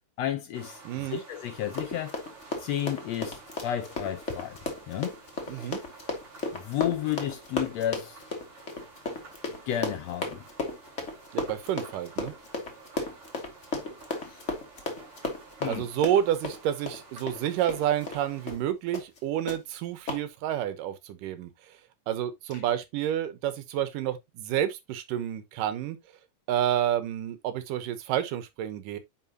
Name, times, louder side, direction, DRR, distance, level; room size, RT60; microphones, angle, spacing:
voice 1, 0.2-2.2 2.6-4.6 4.9-5.2 5.5-5.8 6.5-8.2 9.7-10.4 14.2-14.4 15.6-15.8, left 11 dB, 75° left, 1.6 m, -32 dB
sound 1, 0.5-18.6, right 3 dB, 45° right, 4.0 m, -51 dB
voice 2, 0.9-1.2 5.5-5.8 11.3-12.3 15.7-21.8 22.1-26.0 26.5-29.0, right 11 dB, 90° right, 2.6 m, -29 dB
Run, 1.6-18.2 18.5-18.6 18.9-19.2 19.5-19.6 20.1-20.2, left 3 dB, 30° left, 1.4 m, -34 dB
9.6 x 5.0 x 2.8 m
omnidirectional pair, 3.7 m